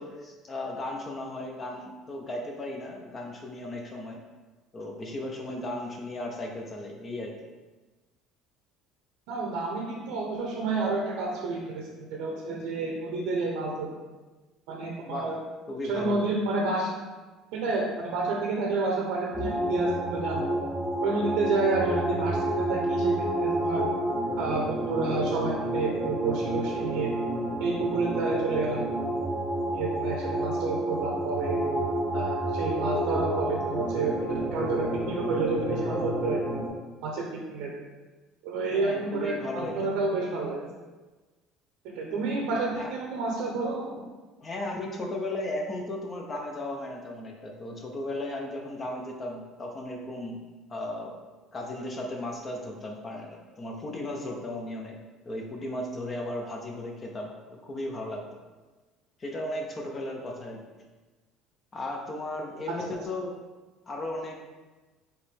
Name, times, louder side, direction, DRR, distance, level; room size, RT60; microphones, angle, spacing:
voice 1, 0.0-4.2 4.7-7.4 15.1-15.3 15.7-16.2 38.7-39.9 42.8-42.9 44.4-50.4 50.7-51.2 51.5-58.4 59.2-60.6 61.7-63.4 63.9-64.5, left 1 dB, 25° left, 1 dB, 0.6 m, -36 dB
voice 2, 9.3-13.9 14.7-15.3 15.8-16.9 17.5-20.5 21.0-23.9 24.4-27.2 27.6-28.9 29.7-31.6 32.1-36.4 37.0-37.7 38.4-40.6 41.8-44.0 62.7-62.8, right 3 dB, 80° right, -1 dB, 0.7 m, -29 dB
sound 1, 19.3-36.7, right 1 dB, 10° right, 0.8 m, -30 dB
4.8 x 3.1 x 3.4 m, 1.2 s
cardioid pair, 140°, 0 cm